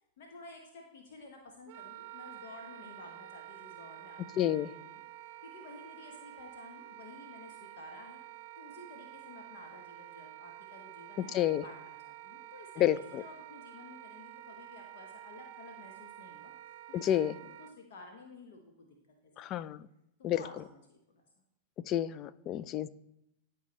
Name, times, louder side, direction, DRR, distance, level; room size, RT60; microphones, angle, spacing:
voice 1, 0.2-5.0 5.4-8.2 8.6-12.9 13.2-16.5 16.9-18.9 19.2-19.5 20.2-21.2, left 3 dB, 55° left, 2 dB, 1.0 m, -52 dB
Wind instrument woodwind instrument, 1.7-17.7, right 13 dB, 50° right, 0.5 m, -49 dB
voice 2, 4.4-4.7 11.3-11.6 12.8-13.2 17.0-17.3 19.4-19.8 20.2-20.4 21.9-22.9, left 12 dB, 35° left, 17 dB, 0.3 m, -29 dB
12.0 x 4.8 x 3.1 m, 0.82 s
figure-of-eight pair, 90°, 0 cm